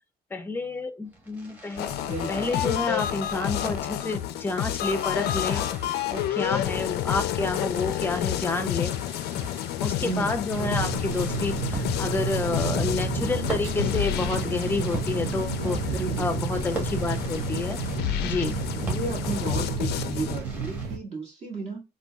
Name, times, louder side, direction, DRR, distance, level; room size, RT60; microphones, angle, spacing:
voice 1, 0.3-1.9 2.3-5.7 6.1-8.9 9.8-15.8 16.2-17.8 18.2-18.6, left 3 dB, 10° left, 0.5 m, -29 dB
Fireworks, 1.0-20.9, right 2 dB, 10° right, 1.3 m, -42 dB
sound 1, 1.8-20.4, left 12 dB, 75° left, 0.4 m, -30 dB
voice 2, 2.1-2.5 10.0-10.3 15.9-16.4 18.7-21.8, right 3 dB, 40° right, 1.7 m, -33 dB
sound 2, 10.5-21.0, right 5 dB, 90° right, 0.7 m, -31 dB
3.7 x 2.3 x 2.3 m
cardioid pair, 110°, 17 cm